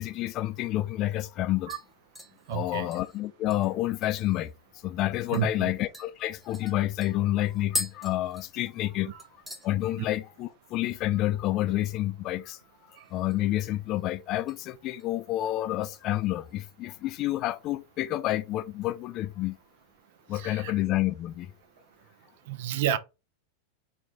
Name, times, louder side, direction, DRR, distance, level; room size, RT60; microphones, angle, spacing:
voice 1, 0.0-1.7 2.5-4.5 4.8-9.1 9.6-12.6 12.9-19.6 20.3-21.5, left 14 dB, 45° left, 0.4 m, -29 dB
sound 1, 1.7-4.5 4.9-5.0 5.3-5.5 5.9-8.9 9.2-9.7 10.0-10.4 10.7-10.8 12.9-13.5 13.9-14.6 15.0-15.3 15.8-16.7 17.1-17.2, left 2 dB, ahead, 1.2 m, -41 dB
voice 2, 2.5-2.9 5.3-5.7 13.0-13.1 20.3-20.7 22.5-23.0, right 11 dB, 65° right, 0.5 m, -30 dB
4.6 x 2.4 x 3.7 m
hypercardioid pair, 95°, 0 cm